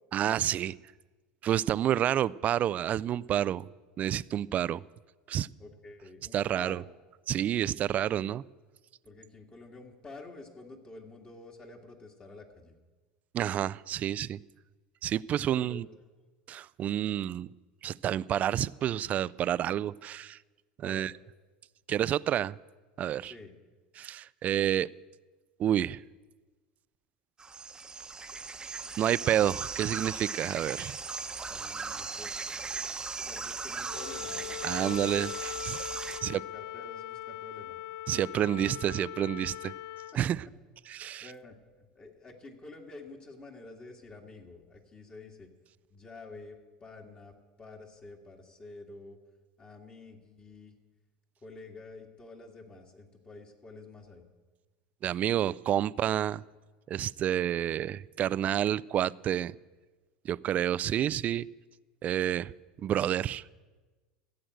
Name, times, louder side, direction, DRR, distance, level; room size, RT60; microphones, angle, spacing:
voice 1, 0.1-0.7 1.4-3.6 4.0-4.8 5.3-5.5 6.3-6.8 7.3-8.4 13.3-14.4 15.0-15.9 16.5-17.5 17.8-20.4 20.8-21.1 21.9-22.6 23.0-23.3 24.0-24.9 25.6-26.0 29.0-31.0 34.6-35.9 36.2-36.4 38.1-39.7 40.1-40.4 40.9-41.3 55.0-56.4 56.9-59.5 60.2-61.5 62.0-62.5 62.8-63.5, right 11 dB, 40° right, 21 dB, 0.3 m, -29 dB
voice 2, 5.6-6.8 9.0-12.7 15.3-15.8 20.8-21.1 23.2-23.5 31.5-32.5 33.3-35.3 36.2-37.8 41.2-45.5 45.9-46.6 46.8-49.2 49.6-50.7 51.4-54.3 58.4-58.7, left 3 dB, 30° left, 2 dB, 1.9 m, -49 dB
sound 1, 27.4-36.2, right 5 dB, 20° right, 0.9 m, -38 dB
Wind instrument woodwind instrument, 33.9-40.2, left 14 dB, 60° left, 0.6 m, -41 dB
14.5 x 7.8 x 7.8 m, 1.3 s
hypercardioid pair, 95°, 4 cm